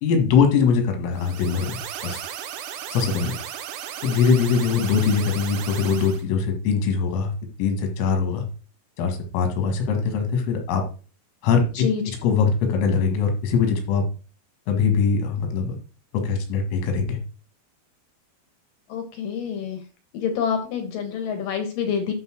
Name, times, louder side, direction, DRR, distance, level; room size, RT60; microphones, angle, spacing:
voice 1, 0.0-2.2 2.9-3.4 4.0-7.3 7.6-8.5 9.0-10.8 11.4-14.0 14.7-15.7 16.1-17.2, left 5 dB, 85° left, 4 dB, 4.6 m, -22 dB
sound 1, 1.1-6.2, right 10 dB, 90° right, 3.6 m, -35 dB
voice 2, 18.9-19.8 20.1-22.1, left 7 dB, 65° left, 5 dB, 2.2 m, -27 dB
11.0 x 4.0 x 6.2 m, 0.36 s
omnidirectional pair, 5.7 m